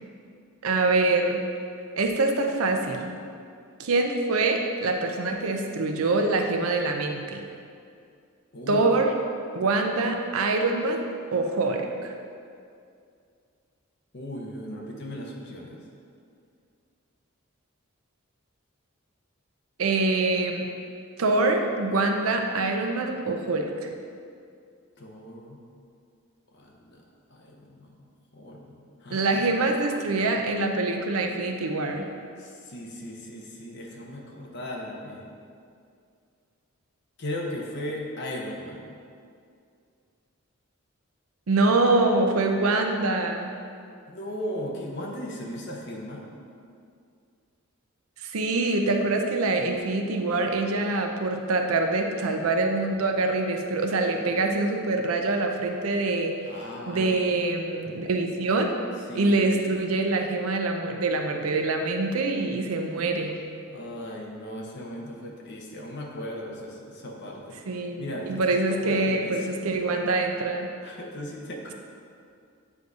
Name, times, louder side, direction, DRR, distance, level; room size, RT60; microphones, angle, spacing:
voice 1, 0.6-1.4 2.0-3.1 3.8-7.4 8.7-9.1 9.5-11.0 11.3-12.2 19.8-20.7 21.2-23.9 29.1-32.1 41.5-43.5 48.2-56.4 56.9-58.7 59.1-63.4 67.7-70.7, right 3 dB, 90° right, 4 dB, 0.6 m, -25 dB
voice 2, 8.5-8.9 14.1-15.8 25.0-25.6 26.5-27.0 27.3-28.0 28.3-28.7 29.0-29.6 32.4-35.3 37.2-39.0 44.1-46.3 56.4-57.2 59.1-59.5 63.7-69.9 70.8-71.7, left 1 dB, 55° left, -1 dB, 0.9 m, -37 dB
8.1 x 2.7 x 4.7 m, 2.4 s
head